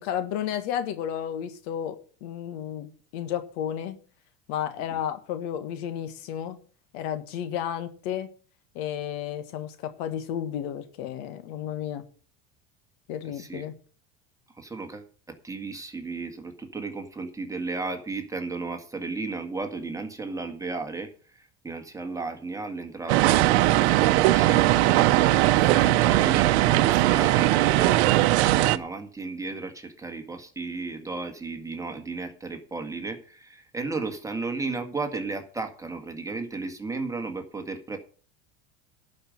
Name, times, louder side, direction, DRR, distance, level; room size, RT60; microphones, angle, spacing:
voice 1, 0.0-4.0 4.5-6.6 6.9-8.3 8.7-12.0 13.1-13.7, left 10 dB, 75° left, 10 dB, 1.7 m, -32 dB
voice 2, 13.3-13.6 14.6-38.0, right 3 dB, 10° right, 5 dB, 1.9 m, -34 dB
sound 1, 23.1-28.8, right 16 dB, 80° right, 0.8 m, -20 dB
11.5 x 5.4 x 8.9 m, 0.42 s
supercardioid pair, 120°, 32 cm